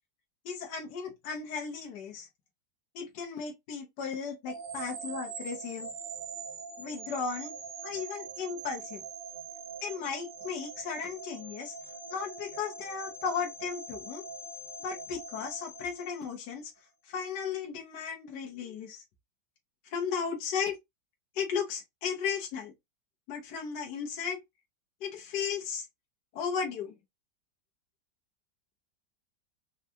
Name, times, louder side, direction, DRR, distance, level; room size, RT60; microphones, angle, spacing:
voice 1, 0.4-2.3 2.9-5.9 6.8-7.6 7.8-9.0 9.8-11.7 12.1-14.2 14.8-16.7 17.0-19.0 19.8-20.8 21.3-22.7 23.3-24.4 25.0-25.9 26.3-26.9, left 6 dB, 70° left, 1.4 m, -35 dB
sound 1, 4.5-16.6, right 4 dB, 90° right, 1.9 m, -43 dB
4.4 x 2.4 x 2.7 m
omnidirectional pair, 1.9 m